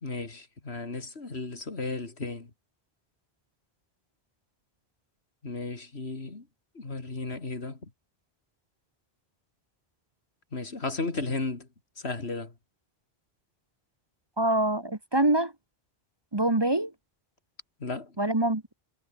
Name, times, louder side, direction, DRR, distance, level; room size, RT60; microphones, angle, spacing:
voice 1, 0.0-2.5 5.4-6.4 6.7-7.9 10.5-11.7 12.0-12.5 17.8-18.1, left 3 dB, 85° left, 3.1 m, -34 dB
voice 2, 14.4-15.5 16.3-16.9 18.2-18.7, right 1 dB, 25° right, 1.3 m, -25 dB
omnidirectional pair, 1.1 m